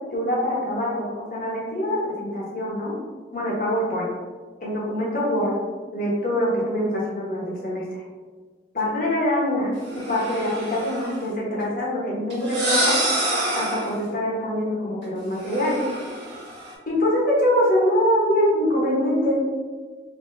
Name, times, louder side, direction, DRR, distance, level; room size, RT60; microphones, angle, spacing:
voice 1, 0.1-2.9 3.3-4.1 4.6-5.5 5.9-7.8 8.7-9.7 10.1-12.9 13.5-15.8 16.9-19.4, left 1 dB, 50° left, -5 dB, 1.1 m, -24 dB
sound 1, 9.9-11.2 12.3-14.0 15.4-16.7, right 1 dB, 75° right, 1.3 m, -27 dB
4.1 x 2.9 x 2.6 m, 1.5 s
head